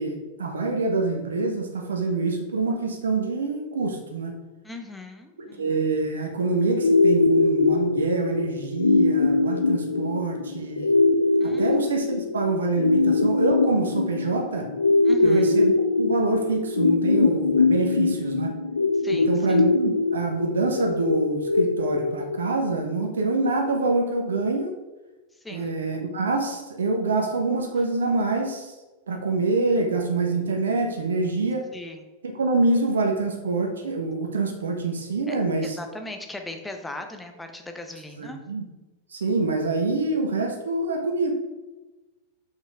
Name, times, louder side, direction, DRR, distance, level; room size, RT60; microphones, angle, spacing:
voice 1, 0.0-4.3 5.6-11.0 11.4-14.7 15.2-18.6 19.1-24.7 25.5-28.7 29.1-31.7 32.3-35.8 38.2-38.6 39.1-41.3, right 3 dB, 70° right, 4 dB, 1.1 m, -26 dB
voice 2, 4.6-5.7 11.4-11.8 15.0-15.5 19.0-19.6 25.4-25.7 31.7-32.1 35.3-35.4 35.6-38.4, left 2 dB, 10° left, 5 dB, 0.9 m, -38 dB
sound 1, 6.8-22.8, left 3 dB, 75° left, 0.3 m, -22 dB
5.9 x 5.6 x 4.7 m, 1.2 s
figure-of-eight pair, 90°, 0 cm